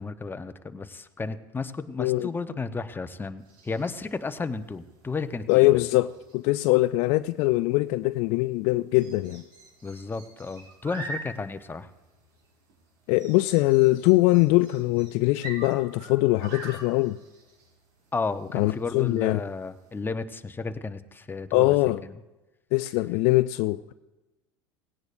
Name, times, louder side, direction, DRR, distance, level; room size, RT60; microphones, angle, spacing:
voice 1, 0.0-5.8 9.8-11.9 18.1-21.8 22.0-22.1, left 4 dB, 15° left, 0.9 m, -33 dB
voice 2, 2.0-2.3 5.5-9.4 13.1-17.2 18.5-19.4 21.5-22.0 22.7-23.9, left 20 dB, 60° left, 0.4 m, -22 dB
sound 1, 3.4-20.0, right 2 dB, 70° right, 5.3 m, -46 dB
18.5 x 17.0 x 2.6 m
hypercardioid pair, 75°, 13 cm